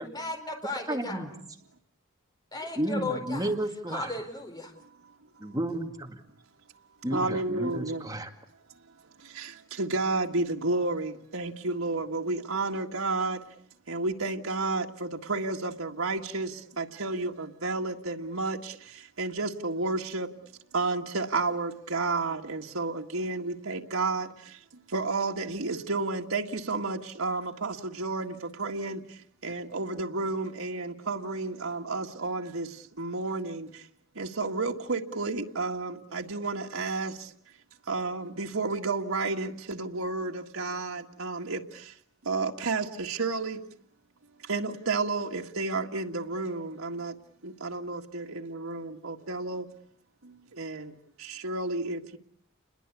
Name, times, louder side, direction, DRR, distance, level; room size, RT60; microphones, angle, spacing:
voice 1, 0.0-1.2 2.5-3.5 3.9-4.7, left 2 dB, 20° left, 4.3 m, -35 dB
voice 2, 0.9-1.3 2.8-4.1 5.4-6.2 7.0-8.3, right 1 dB, 20° right, 2.1 m, -32 dB
voice 3, 7.1-8.1 9.2-13.4 13.9-20.3 20.7-33.9 34.2-37.3 37.9-42.0 42.2-43.6 44.4-47.2 47.4-49.7 50.2-52.2, right 3 dB, 85° right, 1.8 m, -31 dB
29.5 x 21.5 x 8.4 m
head